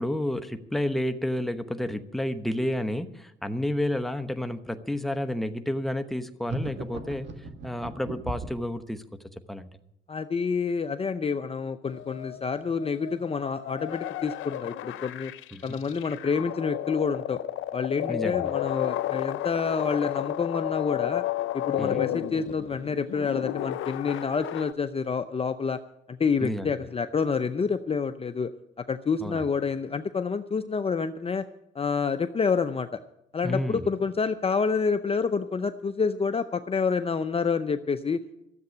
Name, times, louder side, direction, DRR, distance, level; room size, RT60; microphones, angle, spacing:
voice 1, 0.0-9.0 9.5-9.7 15.5-15.6 18.1-18.5 21.8-22.0 26.4-26.8 29.2-29.5 33.4-33.9, left 1 dB, ahead, 8 dB, 1.0 m, -30 dB
sound 1, 6.5-8.7, right 2 dB, 65° right, 2.0 m, -36 dB
voice 2, 10.1-15.3 15.6-17.4 17.7-21.2 21.5-25.8 26.1-28.5 28.9-31.5 31.8-32.9 33.3-38.4, left 5 dB, 30° left, 10 dB, 0.6 m, -28 dB
sound 2, 11.9-24.7, left 14 dB, 80° left, 0.6 m, -33 dB
13.5 x 7.8 x 9.6 m, 0.80 s
cardioid pair, 90°, 20 cm